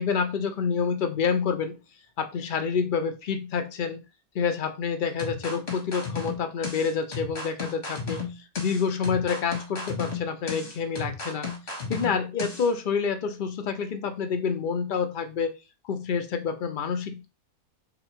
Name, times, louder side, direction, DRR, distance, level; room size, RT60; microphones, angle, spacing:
voice 1, 0.0-1.8 2.2-4.0 4.3-11.5 11.9-15.5 15.8-17.3, left 6 dB, 75° left, 6 dB, 0.4 m, -28 dB
sound 1, 5.2-12.7, left 4 dB, 40° left, 1.9 m, -34 dB
3.9 x 2.8 x 4.4 m, 0.27 s
omnidirectional pair, 1.7 m